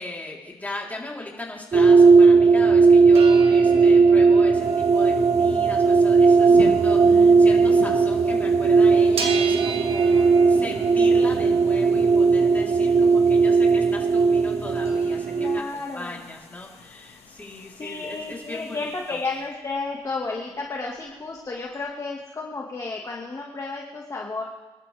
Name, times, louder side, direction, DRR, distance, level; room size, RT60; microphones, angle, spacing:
voice 1, 0.0-19.2, left 2 dB, 15° left, -3 dB, 3.6 m, -38 dB
sound 1, 1.7-15.6, right 4 dB, 40° right, 0.6 m, -17 dB
sound 2, 2.9-8.1 8.4-13.9 14.4-14.5 14.6-18.6 18.9-19.8 20.1-20.2 20.4-21.5 21.9-22.0, right 6 dB, 70° right, 1.6 m, -38 dB
voice 2, 3.7-4.0 15.4-16.2 17.8-24.4, left 3 dB, 30° left, -1 dB, 1.8 m, -32 dB
sound 3, 4.6-19.4, left 7 dB, 85° left, 1.5 m, -43 dB
24.0 x 12.0 x 3.4 m, 1.2 s
cardioid pair, 90°, 10 cm